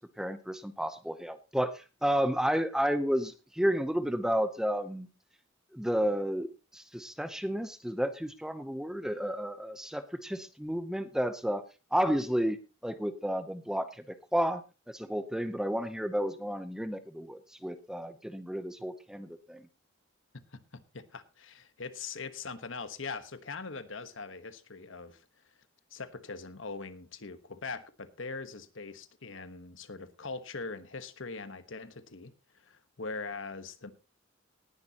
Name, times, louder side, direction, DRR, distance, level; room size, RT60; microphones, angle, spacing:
voice 1, 0.2-5.1 5.7-6.5 6.7-11.6 11.9-13.9 14.3-14.6 14.9-19.6, equal, 5° right, 11 dB, 0.7 m, -31 dB
voice 2, 20.5-25.3 25.9-33.9, left 4 dB, 65° left, 11 dB, 1.2 m, -42 dB
18.5 x 10.5 x 2.9 m, 0.31 s
head